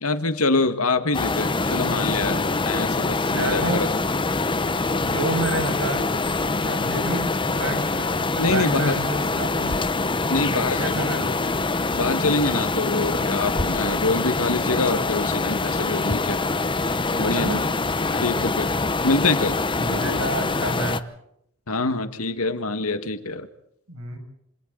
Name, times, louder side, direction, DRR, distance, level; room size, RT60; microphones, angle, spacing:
voice 1, 0.0-3.9 8.4-9.0 10.3-10.9 11.9-16.4 17.2-17.6 18.2-18.7 19.0-19.6 21.7-23.5, left 3 dB, 85° left, 9 dB, 1.9 m, -25 dB
sound 1, 1.1-21.0, left 3 dB, 25° left, 0.9 m, -24 dB
voice 2, 3.2-3.8 5.0-6.1 6.6-9.8 10.3-11.3 17.1-17.6 18.1-18.5 19.8-21.0 23.9-24.2, right 1 dB, 75° right, 5 dB, 6.2 m, -29 dB
27.5 x 27.0 x 4.1 m, 0.76 s
head